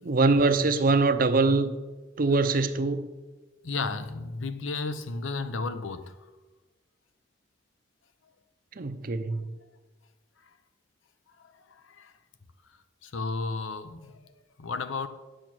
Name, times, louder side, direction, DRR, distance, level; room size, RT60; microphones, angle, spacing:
voice 1, 0.0-1.7 2.2-3.1 8.8-9.4, right 3 dB, 45° right, 0.6 m, -23 dB
voice 2, 3.6-6.1 11.4-12.1 13.0-14.3 14.6-15.1, left 3 dB, 85° left, 0.7 m, -33 dB
9.1 x 6.3 x 6.0 m
head